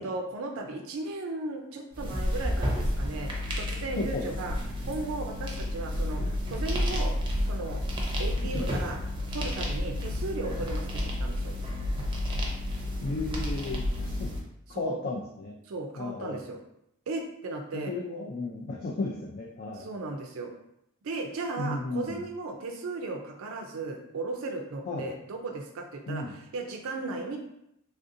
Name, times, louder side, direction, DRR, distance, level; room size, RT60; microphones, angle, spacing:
voice 1, 0.0-4.6 4.8-7.1 7.4-7.8 8.2-9.0 9.3-11.5 14.7-15.0 15.7-16.6 17.1-17.9 19.8-20.5 21.0-27.4, right 2 dB, 70° right, 3 dB, 0.4 m, -36 dB
sound 1, 1.9-14.4, left 1 dB, 25° right, 0.6 m, -31 dB
voice 2, 4.0-4.3 8.4-8.7 13.0-14.3 14.7-15.6 15.9-16.4 17.7-19.9 21.6-22.1 24.9-25.1 26.1-26.3, left 2 dB, 45° left, -1 dB, 0.4 m, -34 dB
3.4 x 2.5 x 2.6 m, 0.78 s
head